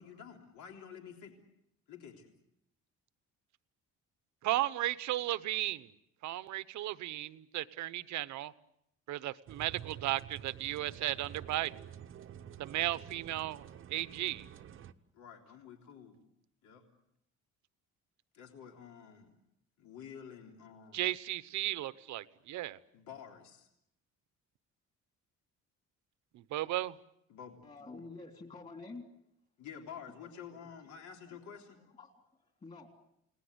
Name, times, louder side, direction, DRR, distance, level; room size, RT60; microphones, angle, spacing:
voice 1, 0.0-1.3 1.9-2.3 15.1-16.2 16.6-16.9 18.3-19.3 19.8-21.0 22.9-23.7 27.3-27.6 29.6-31.8, left 7 dB, 70° left, 3.6 m, -50 dB
voice 2, 4.4-5.9 6.2-8.5 9.1-11.9 12.6-13.6 13.9-14.5 20.9-22.8 26.3-27.0, right 15 dB, 70° right, 1.0 m, -35 dB
sound 1, 9.5-14.9, right 10 dB, 40° right, 0.9 m, -49 dB
voice 3, 27.6-29.1 30.1-30.6 31.3-31.6 31.9-32.9, left 3 dB, 25° left, 3.2 m, -50 dB
29.5 x 19.0 x 8.0 m
cardioid pair, 165°, 30 cm